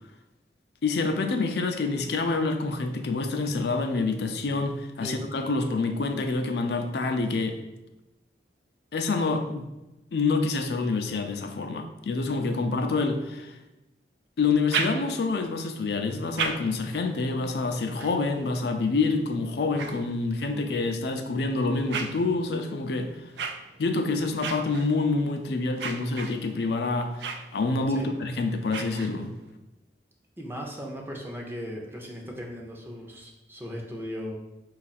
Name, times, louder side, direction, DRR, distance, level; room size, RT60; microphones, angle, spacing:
voice 1, 0.8-7.6 8.9-9.7 10.1-13.5 14.4-23.2 23.8-29.3, left 3 dB, 65° left, 5 dB, 0.4 m, -27 dB
sound 1, 14.4-15.4 16.0-20.6 21.2-29.5, right 5 dB, 80° right, 0.4 m, -38 dB
voice 2, 30.4-34.3, equal, 10° right, 0 dB, 0.6 m, -37 dB
4.6 x 2.4 x 4.1 m, 0.96 s
head